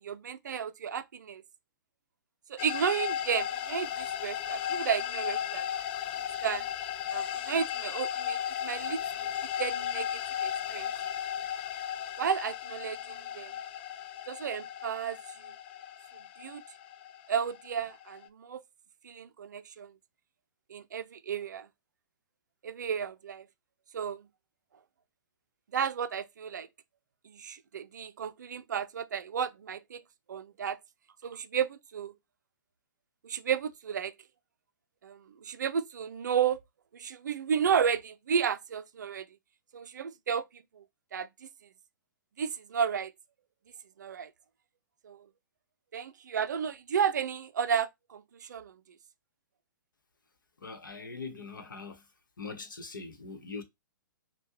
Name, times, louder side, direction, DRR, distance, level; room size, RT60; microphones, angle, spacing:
voice 1, 0.0-1.4 2.5-5.7 6.4-6.7 7.1-9.3 9.6-10.9 12.2-13.5 14.3-15.5 16.4-16.6 17.3-18.6 19.0-19.9 20.7-21.7 22.6-23.5 23.9-24.3 25.7-26.7 27.2-30.0 30.3-30.8 31.2-32.1 33.2-34.1 35.0-36.6 36.9-39.3 39.7-40.8 41.1-41.5 42.4-43.1 44.0-44.3 45.0-45.3 45.9-48.8, right 7 dB, 60° right, 0.4 m, -33 dB
sound 1, 2.6-18.3, left 10 dB, 30° left, 0.3 m, -35 dB
voice 2, 50.6-52.0 52.4-53.6, left 4 dB, 70° left, 1.0 m, -42 dB
5.4 x 2.2 x 2.9 m
figure-of-eight pair, 120°, 11 cm